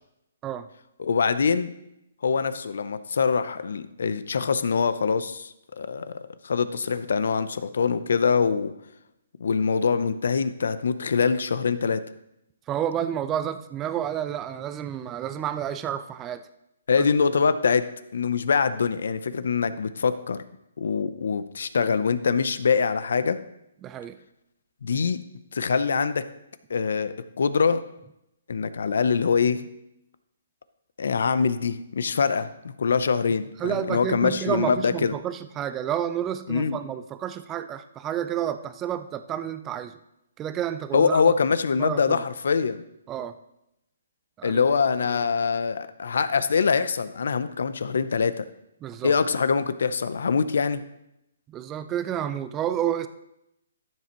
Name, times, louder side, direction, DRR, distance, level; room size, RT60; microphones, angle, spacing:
voice 1, 1.0-1.7 2.2-6.1 6.4-8.7 9.4-12.0 16.9-17.8 18.1-20.4 20.8-23.4 24.8-25.2 25.5-26.2 26.7-27.8 28.5-29.7 31.0-32.5 32.8-35.1 36.5-36.8 40.9-42.8 44.4-48.4 49.0-50.8, left 5 dB, 70° left, 13 dB, 0.7 m, -24 dB
voice 2, 12.7-16.4 17.0-17.1 23.8-24.2 33.6-40.0 40.4-41.2 41.8-42.2 43.1-43.4 44.4-44.6 45.1-45.2 48.8-49.1 51.5-53.1, right 10 dB, 20° right, 11 dB, 0.5 m, -30 dB
13.5 x 7.5 x 3.1 m, 0.84 s
hypercardioid pair, 150°, 0 cm